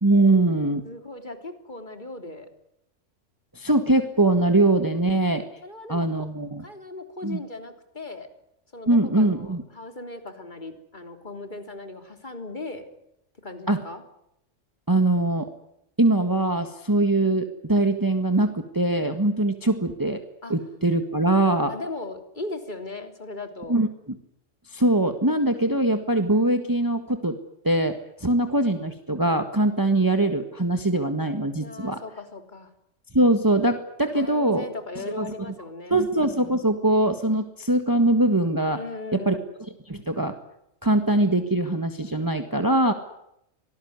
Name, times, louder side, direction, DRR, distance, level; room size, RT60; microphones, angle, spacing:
voice 1, 0.0-0.8 3.6-5.4 5.9-6.6 7.2-7.4 8.9-9.6 13.7-13.8 14.9-15.5 16.0-20.2 20.5-21.7 23.7-23.9 24.7-27.4 27.6-32.0 33.1-34.6 35.1-35.3 35.9-38.8 39.1-39.4 39.9-40.3 40.8-42.9, right 2 dB, 15° right, 8 dB, 1.7 m, -22 dB
voice 2, 0.8-2.5 5.6-6.3 6.6-8.3 8.7-12.9 13.4-14.0 20.4-20.5 21.7-23.8 31.6-32.7 34.1-36.0 38.8-39.4, left 2 dB, 35° left, 7 dB, 3.5 m, -38 dB
26.0 x 19.0 x 9.6 m, 0.81 s
omnidirectional pair, 1.3 m